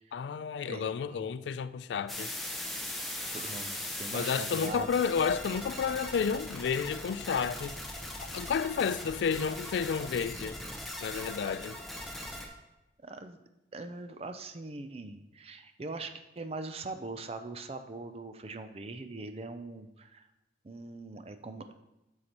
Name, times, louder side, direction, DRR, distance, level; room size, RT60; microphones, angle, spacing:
voice 1, 0.1-2.3 4.1-7.8 8.2-10.6 11.0-11.8, left 6 dB, 75° left, 0.3 m, -31 dB
voice 2, 0.7-1.3 3.3-4.9 13.0-13.4 13.7-20.3 20.6-21.7, right 3 dB, 35° right, 0.4 m, -42 dB
sound 1, 2.1-12.5, left 1 dB, ahead, 0.9 m, -40 dB
9.3 x 6.5 x 3.0 m
head